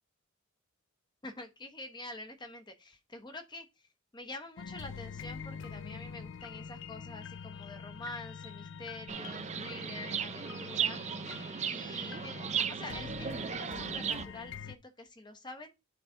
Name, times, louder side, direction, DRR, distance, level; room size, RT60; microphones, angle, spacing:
voice 1, 1.2-3.7 4.1-11.0 11.7-15.7, left 2 dB, 20° left, 1.1 m, -46 dB
sound 1, 4.6-14.7, left 6 dB, 65° left, 0.4 m, -45 dB
Chirp tweet, 9.1-14.2, right 7 dB, 35° right, 0.4 m, -36 dB
9.4 x 4.0 x 3.9 m
head